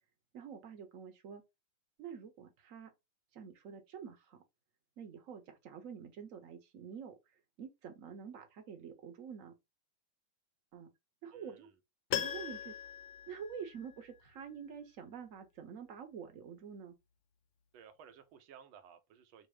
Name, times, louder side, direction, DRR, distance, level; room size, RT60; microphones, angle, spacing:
voice 1, 0.3-1.4 2.0-2.9 3.3-4.4 5.0-7.1 7.6-9.5 10.7-10.9 11.2-11.7 12.1-12.7 13.3-16.9, right 7 dB, 50° right, 1.0 m, -47 dB
voice 2, 11.3-11.7 17.7-19.5, right 8 dB, 75° right, 1.5 m, -57 dB
Piano, 12.1-14.2 14.5-14.6, left 11 dB, 80° left, 1.4 m, -40 dB
5.3 x 2.0 x 4.8 m
omnidirectional pair, 2.4 m